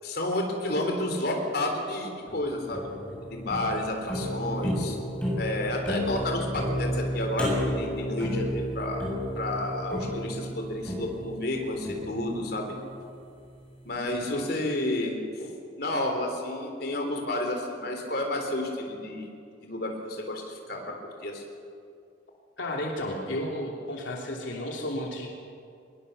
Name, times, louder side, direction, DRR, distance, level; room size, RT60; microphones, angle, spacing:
voice 1, 0.0-2.8 3.3-5.0 5.4-9.0 9.4-12.7 13.8-15.5 15.8-19.3 19.6-21.4, left 1 dB, 55° left, 3 dB, 3.8 m, -31 dB
sound 1, 2.3-13.5, equal, 5° left, 7.8 m, -32 dB
voice 2, 22.6-25.3, left 1 dB, 85° left, -1 dB, 2.9 m, -33 dB
23.0 x 21.0 x 6.8 m, 2.4 s
head